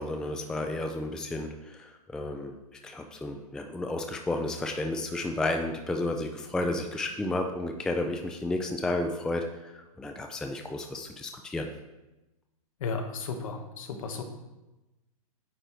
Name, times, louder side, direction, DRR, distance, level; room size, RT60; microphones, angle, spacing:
voice 1, 0.0-2.5 2.8-11.7, left 2 dB, 5° left, 4 dB, 0.4 m, -32 dB
voice 2, 12.8-14.2, left 4 dB, 60° left, 5 dB, 1.2 m, -34 dB
9.1 x 3.3 x 4.5 m, 1.0 s
hypercardioid pair, 120°, 19 cm